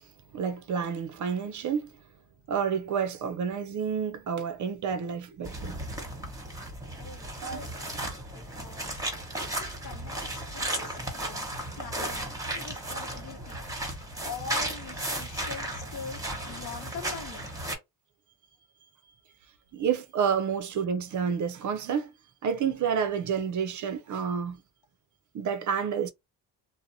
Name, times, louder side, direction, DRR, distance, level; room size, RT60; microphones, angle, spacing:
voice 1, 0.3-1.9 2.5-5.8 7.4-7.6 19.7-22.1 22.4-24.6 25.3-26.1, right 7 dB, 45° right, 0.5 m, -29 dB
sound 1, 5.4-17.8, right 1 dB, 10° right, 1.0 m, -35 dB
voice 2, 7.0-8.0 8.3-9.0 9.6-11.5 11.8-13.9 14.2-17.5, left 5 dB, 65° left, 0.9 m, -43 dB
2.6 x 2.1 x 2.6 m
cardioid pair, 80°, 41 cm